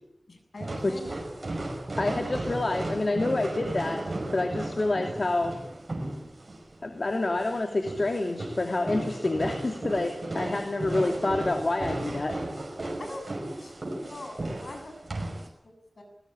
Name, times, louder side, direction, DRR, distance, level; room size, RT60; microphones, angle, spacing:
voice 1, 0.3-1.2 10.3-10.5 13.0-16.0, left 1 dB, 70° left, 4 dB, 7.9 m, -43 dB
sound 1, 0.6-15.5, right 1 dB, 50° right, 5.7 m, -35 dB
voice 2, 2.0-4.0 4.3-5.6 6.8-12.4, left 2 dB, 55° left, 4 dB, 2.8 m, -28 dB
22.5 x 20.5 x 8.8 m, 0.83 s
wide cardioid pair, 70°, 0 cm